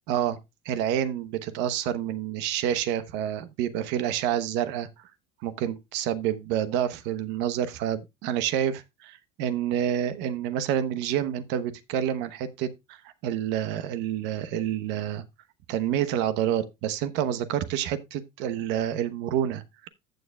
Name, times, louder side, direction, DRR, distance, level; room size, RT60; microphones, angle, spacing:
voice 1, 0.1-0.4 0.6-5.0 5.4-15.2 15.7-19.9, right 10 dB, 75° right, 1.0 m, -28 dB
14.5 x 6.6 x 2.3 m
cardioid pair, 130°, 19 cm